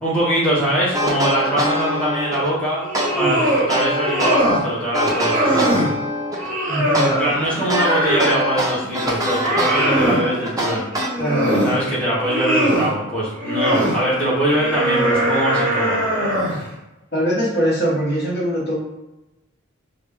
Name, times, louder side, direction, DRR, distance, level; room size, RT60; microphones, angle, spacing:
voice 1, 0.0-2.8 3.1-5.9 7.1-10.8 11.5-16.0, equal, 5° left, -9 dB, 0.9 m, -22 dB
sound 1, 0.9-2.5 2.9-4.6 4.9-6.5 6.9-11.5, equal, 15° right, 0.5 m, -23 dB
sound 2, 2.8-3.7 4.0-4.7 5.0-5.9 6.4-8.4 8.8-10.2 10.9-11.8 12.1-12.9 13.4-14.0 14.5-16.6, right 1 dB, 40° right, 1.1 m, -21 dB
voice 2, 6.7-7.1 11.2-11.5 17.1-18.7, right 1 dB, 50° left, -5 dB, 1.0 m, -22 dB
3.2 x 2.4 x 3.4 m, 0.98 s
head